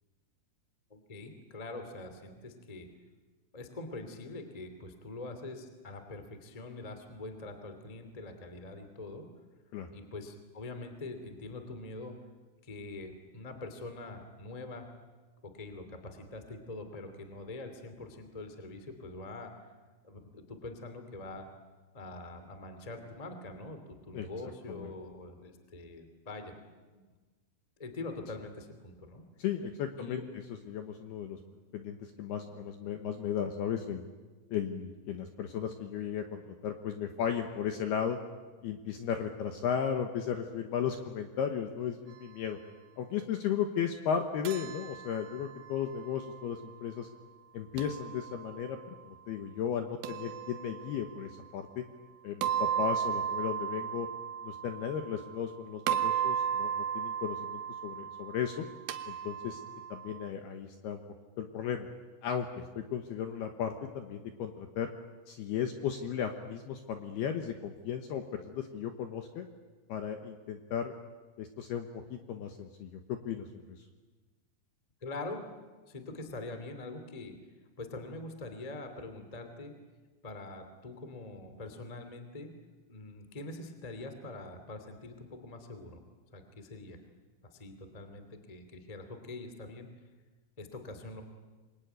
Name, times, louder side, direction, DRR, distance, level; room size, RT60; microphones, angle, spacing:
voice 1, 0.9-2.9 3.5-9.3 9.9-12.2 12.6-14.9 15.4-19.5 20.0-21.4 21.9-26.5 26.9-27.0 27.8-29.2 30.0-30.3 75.0-75.4 75.9-77.3 77.8-79.7 80.2-82.5 82.9-86.0 86.3-87.0 87.5-89.9 90.6-91.2, left 2 dB, 15° left, 7 dB, 1.2 m, -44 dB
voice 2, 29.4-30.2 30.7-31.4 31.7-34.0 34.5-38.2 38.6-42.6 43.0-47.1 47.5-51.8 52.2-54.1 54.4-58.6 59.1-59.6 59.9-61.0 61.4-61.9 62.2-64.9 65.3-69.5 69.9-70.9 71.4-73.6, left 8 dB, 70° left, 6 dB, 2.6 m, -35 dB
sound 1, 44.5-46.6 47.8-48.8 50.0-51.2 52.4-55.5 55.9-60.3, right 9 dB, 75° right, 2.4 m, -35 dB
27.0 x 22.5 x 9.4 m, 1.3 s
omnidirectional pair, 5.9 m